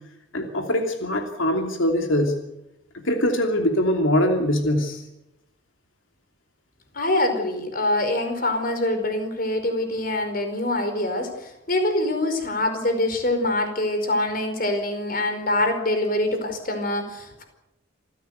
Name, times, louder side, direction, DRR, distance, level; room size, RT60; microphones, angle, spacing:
voice 1, 0.3-2.3 3.0-5.0, left 1 dB, 90° left, 4 dB, 3.0 m, -22 dB
voice 2, 6.9-17.4, left 1 dB, 45° left, 7 dB, 4.8 m, -24 dB
27.0 x 15.5 x 8.2 m, 0.91 s
head